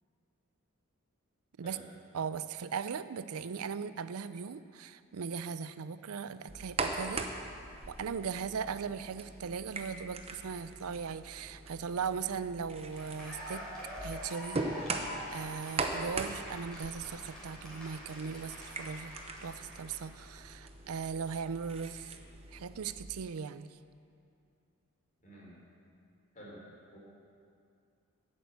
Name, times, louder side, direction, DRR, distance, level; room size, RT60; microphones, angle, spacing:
voice 1, 2.1-7.3 7.9-13.6 14.0-15.0 15.3-19.2 19.4-22.2 22.5-23.7, right 6 dB, 80° right, 13 dB, 0.5 m, -38 dB
sound 1, 6.5-23.0, right 3 dB, 25° right, 0.8 m, -41 dB
Cheering / Applause, 12.7-20.2, equal, 5° left, 3.3 m, -46 dB
voice 2, 25.2-25.6 26.3-26.6 26.9-27.0, equal, 35° left, -5 dB, 3.8 m, -50 dB
11.0 x 8.7 x 8.2 m, 2.4 s
head